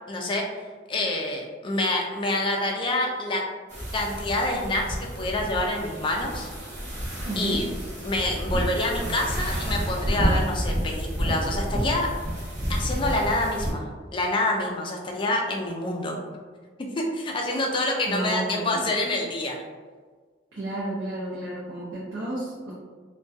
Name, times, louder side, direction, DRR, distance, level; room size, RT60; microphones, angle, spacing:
voice 1, 0.1-0.5 0.9-3.4 3.9-6.5 7.4-7.7 8.0-12.1 12.7-16.2 16.8-19.6, left 2 dB, 25° left, 0 dB, 0.3 m, -27 dB
sound 1, 3.7-13.7, equal, 40° right, 0.9 m, -30 dB
voice 2, 7.3-7.6 18.1-18.9 20.5-22.7, right 2 dB, 75° right, -7 dB, 0.6 m, -31 dB
2.6 x 2.2 x 2.3 m, 1.5 s
head